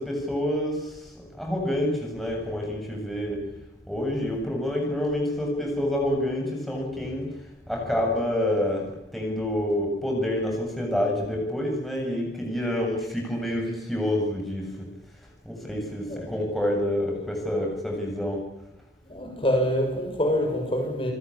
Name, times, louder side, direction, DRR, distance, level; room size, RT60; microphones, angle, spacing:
voice 1, 0.0-3.4 3.9-7.3 7.7-14.9 15.4-18.4, left 1 dB, ahead, 7.6 m, -28 dB
voice 2, 19.0-21.1, equal, 30° left, 6.9 m, -26 dB
29.5 x 19.5 x 8.8 m
head